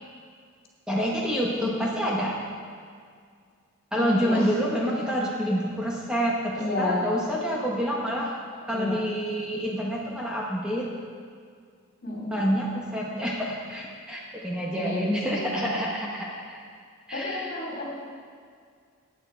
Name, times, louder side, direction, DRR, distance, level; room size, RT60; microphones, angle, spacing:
voice 1, 0.9-2.4 3.9-8.3 8.7-10.9 12.3-16.6 17.1-17.6, equal, 5° right, -4 dB, 1.0 m, -28 dB
voice 2, 1.4-1.9 3.9-4.7 6.6-7.2 8.6-9.0 12.0-12.7 14.7-15.7 17.1-17.9, left 1 dB, 45° left, -3 dB, 2.8 m, -31 dB
16.0 x 9.2 x 4.4 m, 2.1 s
head